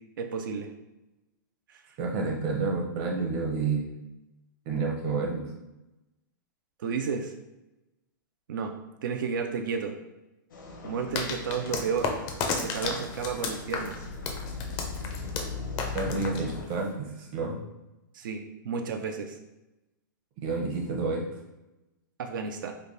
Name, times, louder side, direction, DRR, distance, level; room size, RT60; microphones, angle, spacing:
voice 1, 0.2-0.7 1.7-1.8 6.8-7.3 8.5-8.7 9.0-10.0 10.8-12.1 12.6-14.0 18.1-19.3 22.2-22.7, right 5 dB, 70° right, 4 dB, 0.4 m, -32 dB
voice 2, 2.0-3.9 4.7-5.5 15.9-17.6 20.4-21.2, right 4 dB, 30° right, 0 dB, 0.7 m, -29 dB
sound 1, 10.5-16.6, left 3 dB, 75° left, 0.7 m, -39 dB
sound 2, 11.1-16.9, left 5 dB, 30° left, 0.4 m, -33 dB
3.3 x 2.2 x 3.8 m, 1.0 s
hypercardioid pair, 155°, 11 cm